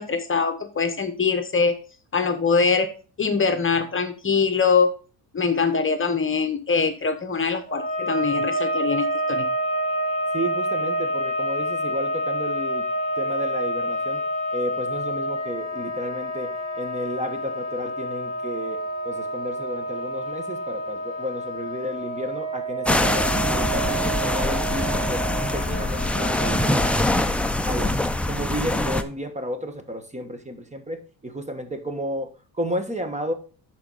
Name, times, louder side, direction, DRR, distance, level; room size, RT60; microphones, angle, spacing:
voice 1, 0.0-1.7 2.1-2.9 3.2-4.9 5.3-9.5, left 5 dB, 30° left, 7 dB, 1.0 m, -23 dB
sound 1, 7.7-27.3, right 1 dB, 45° right, 3.7 m, -28 dB
voice 2, 10.3-12.9 13.2-14.2 14.5-25.2 25.5-27.4 27.6-28.0 28.3-33.3, equal, 15° right, 8 dB, 1.3 m, -32 dB
sound 2, 22.8-29.0, left 1 dB, 5° left, 0.6 m, -23 dB
11.0 x 4.5 x 4.0 m, 0.37 s
cardioid pair, 90°, 42 cm